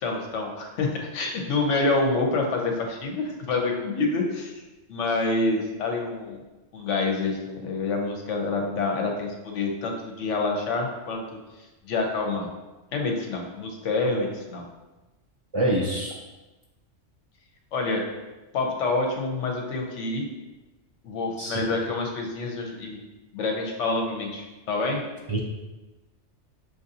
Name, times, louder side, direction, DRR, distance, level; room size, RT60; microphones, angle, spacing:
voice 1, 0.0-4.5 4.9-6.4 6.7-12.5 12.9-14.6 17.7-18.0 18.5-20.2 21.0-23.0 23.3-25.0, left 3 dB, 80° left, 1 dB, 1.0 m, -27 dB
voice 2, 15.5-16.1 21.4-21.6 25.3-25.4, right 1 dB, 50° right, -4 dB, 0.3 m, -25 dB
6.4 x 2.6 x 2.7 m, 1.1 s
omnidirectional pair, 1.2 m